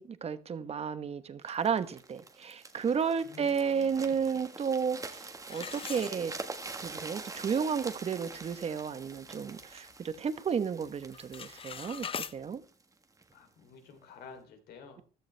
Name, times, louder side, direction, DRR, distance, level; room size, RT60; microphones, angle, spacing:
voice 1, 0.0-5.2 5.5-6.3 6.8-12.1 12.3-12.6, right 6 dB, 35° right, 1.2 m, -32 dB
sound 1, 1.5-13.3 13.9-14.1, right 3 dB, 20° right, 1.6 m, -45 dB
voice 2, 3.2-4.2 13.3-15.0, left 5 dB, 70° left, 3.4 m, -51 dB
sound 2, 5.5-6.7 7.2-7.3 7.9-8.0 8.3-8.6 9.1-10.2 10.5-10.8 11.1-12.4, left 7 dB, 35° left, 0.7 m, -42 dB
15.0 x 13.0 x 3.4 m
cardioid pair, 110°, 17 cm